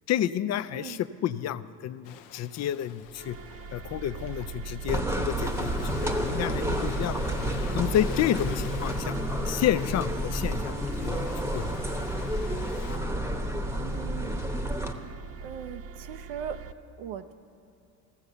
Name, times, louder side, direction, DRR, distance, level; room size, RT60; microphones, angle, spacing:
voice 1, 0.1-3.4 3.7-7.3 7.7-9.2 9.5-11.7, left 11 dB, 40° left, 14 dB, 0.4 m, -30 dB
Ocean, 2.0-13.0, left 10 dB, 70° left, 0.8 m, -47 dB
sound 1, 3.0-16.7, right 5 dB, 35° right, 0.5 m, -41 dB
sound 2, 4.9-14.9, equal, 5° right, 0.9 m, -30 dB
voice 2, 13.8-14.4 15.4-16.6 17.0-17.3, right 8 dB, 70° right, 9 dB, 0.7 m, -39 dB
14.0 x 7.0 x 6.7 m, 2.8 s
supercardioid pair, 85°, 44 cm